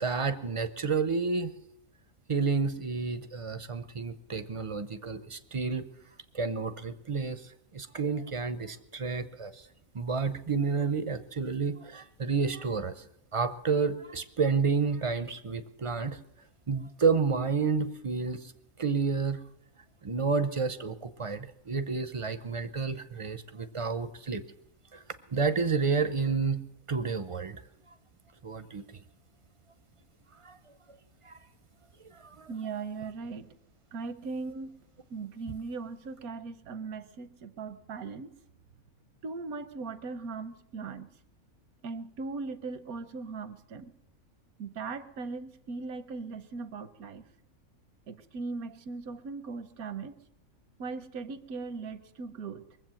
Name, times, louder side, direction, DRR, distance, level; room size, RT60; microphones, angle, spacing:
voice 1, 0.0-1.5 2.3-5.9 6.3-9.7 9.9-13.0 13.3-16.2 16.7-18.5 18.8-19.4 20.0-24.4 24.9-25.0 25.3-26.6 26.9-27.6 28.4-28.8 30.4-30.6 31.2-31.4 32.0-32.5, right 5 dB, 40° right, 12 dB, 0.4 m, -30 dB
voice 2, 32.5-33.5 33.9-34.7 35.1-38.3 39.2-41.1 41.8-43.9 44.6-47.2 48.1-50.2 50.8-52.6, right 4 dB, 85° right, 12 dB, 1.3 m, -39 dB
22.5 x 7.8 x 7.5 m, 0.82 s
omnidirectional pair, 1.5 m